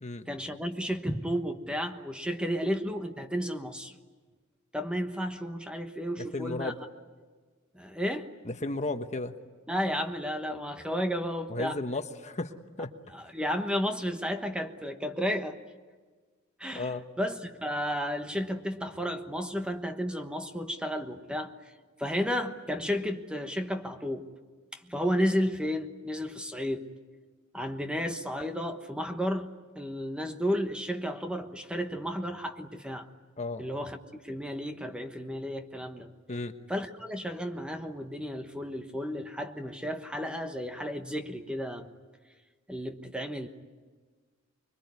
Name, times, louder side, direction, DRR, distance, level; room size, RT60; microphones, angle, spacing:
voice 1, 0.3-3.9 4.7-6.7 7.7-8.3 9.7-11.8 13.1-15.6 16.6-21.5 22.0-24.3 24.7-26.9 27.5-33.1 33.6-36.1 36.7-41.9 42.7-43.5, equal, 5° right, 6 dB, 1.2 m, -32 dB
voice 2, 6.2-6.8 8.4-9.4 11.5-12.5 12.8-12.9 16.7-17.1 33.4-33.6 36.3-36.6, left 2 dB, 35° left, 7 dB, 1.3 m, -34 dB
25.0 x 23.5 x 9.6 m, 1.5 s
head